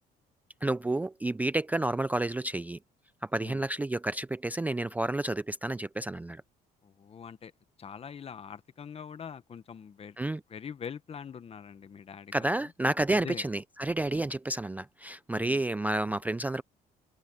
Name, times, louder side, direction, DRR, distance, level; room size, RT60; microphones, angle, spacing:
voice 1, 0.6-2.8 3.2-6.4 10.2-10.4 12.3-16.6, right 2 dB, 10° right, 0.4 m, -30 dB
voice 2, 6.8-7.5 7.8-10.2 10.5-12.7 13.1-13.5 15.3-15.6, left 7 dB, 35° left, 1.2 m, -43 dB
cardioid pair, 110°, 17 cm